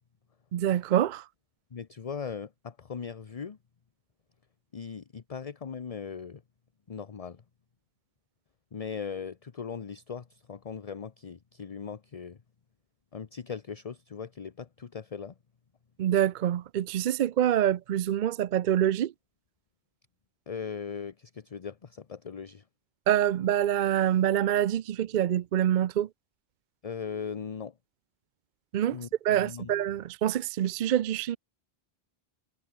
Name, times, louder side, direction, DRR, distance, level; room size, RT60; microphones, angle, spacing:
voice 1, 0.5-1.2 16.0-19.1 23.1-26.1 28.7-29.0 29.2-31.4, right 11 dB, 60° right, 0.6 m, -26 dB
voice 2, 1.7-3.6 4.7-6.4 6.9-7.4 8.7-12.4 13.1-15.3 20.5-22.6 26.8-27.7 28.9-29.7, left 6 dB, 35° left, 0.8 m, -39 dB
omnidirectional pair, 1.1 m